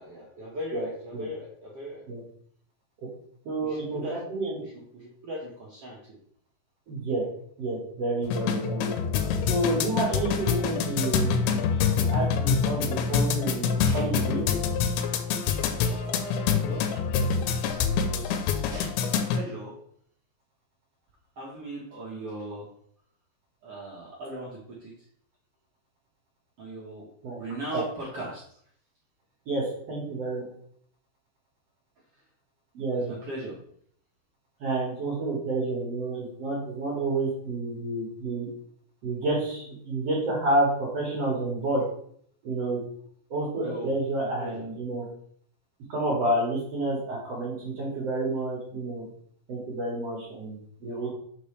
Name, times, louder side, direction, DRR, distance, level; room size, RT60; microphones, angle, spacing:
voice 1, 0.0-2.0 3.6-4.2 4.6-6.2 15.8-18.7 19.0-19.7 21.4-22.7 23.6-24.9 26.6-27.1 27.4-28.4 32.9-33.6 43.6-44.6, right 1 dB, 75° right, -6 dB, 1.3 m, -39 dB
voice 2, 3.4-4.6 6.9-7.2 7.6-9.0 9.5-11.6 12.1-14.4 27.2-27.4 27.7-27.8 29.5-30.4 32.7-33.1 34.6-38.5 39.0-41.8 42.4-42.8 43.3-45.0 45.9-49.0 49.5-51.1, right 2 dB, 55° right, -5 dB, 2.0 m, -29 dB
sound 1, 8.2-19.4, left 6 dB, 80° left, 2.3 m, -26 dB
Sneeze, 12.7-13.2 13.7-14.3 15.2-15.3 16.2-16.3 16.5-16.6 17.0-18.2 18.7-19.2, right 1 dB, 5° left, 1.8 m, -46 dB
6.8 x 4.6 x 3.2 m, 0.63 s
omnidirectional pair, 4.7 m